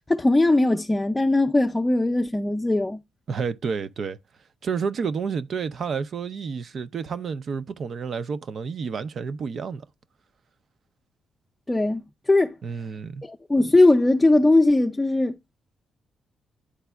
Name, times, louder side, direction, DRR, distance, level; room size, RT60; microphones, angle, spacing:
voice 1, 0.1-3.0 11.7-12.0 12.3-12.5 13.2-15.3, left 2 dB, 15° left, 0.5 m, -19 dB
voice 2, 3.3-4.2 4.6-9.8 12.6-13.2, right 5 dB, 55° right, 0.5 m, -30 dB
11.0 x 4.0 x 2.2 m
cardioid pair, 85°, 0 cm